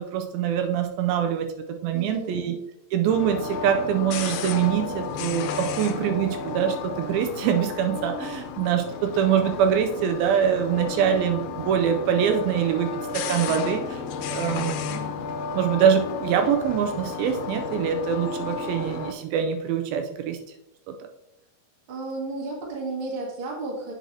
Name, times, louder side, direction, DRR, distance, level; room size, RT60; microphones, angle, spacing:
voice 1, 0.0-1.5 1.8-2.5 2.9-14.0 14.3-15.2 15.5-20.4, right 8 dB, 85° right, 5 dB, 2.4 m, -24 dB
voice 2, 1.9-2.5 21.9-23.9, right 3 dB, 45° right, -2 dB, 2.0 m, -33 dB
sound 1, 3.1-19.1, left 5 dB, 90° left, 2.5 m, -33 dB
7.9 x 6.2 x 2.7 m, 0.85 s
omnidirectional pair, 4.3 m